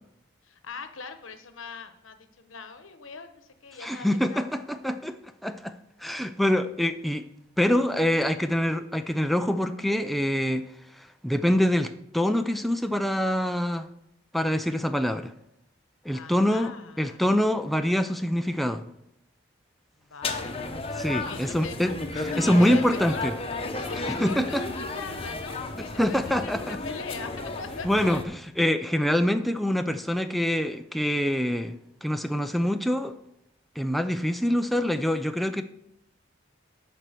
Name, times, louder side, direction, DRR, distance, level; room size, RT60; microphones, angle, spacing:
voice 1, 0.4-4.7 16.1-17.2 20.0-20.6 21.2-21.8 22.3-23.2 23.7-27.9, left 5 dB, 80° left, 8 dB, 1.0 m, -41 dB
voice 2, 3.8-5.2 5.4-5.7 6.0-7.3 7.6-10.7 10.9-13.9 14.3-15.3 16.0-18.8 21.0-23.3 24.1-24.7 26.0-26.8 27.8-31.8 32.0-33.2 33.8-35.6, equal, ahead, 7 dB, 0.3 m, -25 dB
sound 1, 20.2-28.2, left 2 dB, 30° left, 0.8 m, -33 dB
10.5 x 4.4 x 6.8 m, 0.80 s
head